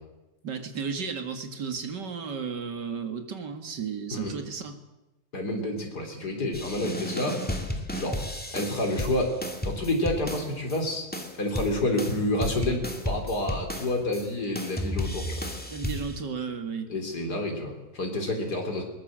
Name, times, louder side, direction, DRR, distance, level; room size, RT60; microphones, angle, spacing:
voice 1, 0.4-4.8 15.7-16.9, right 6 dB, 80° right, 7 dB, 2.7 m, -34 dB
voice 2, 5.3-7.4 8.0-8.2 8.5-9.3 9.6-11.1 11.4-15.4 16.9-18.8, left 1 dB, 65° left, 3 dB, 4.3 m, -29 dB
sound 1, 6.5-10.8 11.1-14.2 14.6-16.2, left 1 dB, 5° left, 2.3 m, -33 dB
21.5 x 20.5 x 7.6 m, 1.0 s
omnidirectional pair, 1.8 m